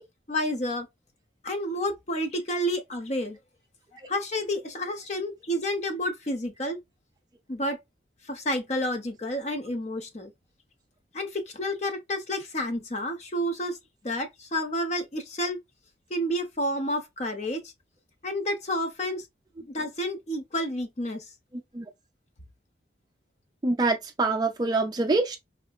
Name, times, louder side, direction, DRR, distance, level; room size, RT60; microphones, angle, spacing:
voice 1, 0.3-0.9 1.4-3.4 4.1-6.8 7.5-7.8 8.2-10.3 11.1-13.8 14.0-15.6 16.1-17.7 18.2-19.3 19.6-21.3, equal, 35° left, 0.7 m, -30 dB
voice 2, 23.6-25.4, right 3 dB, 20° right, 0.4 m, -25 dB
4.3 x 2.0 x 2.2 m
head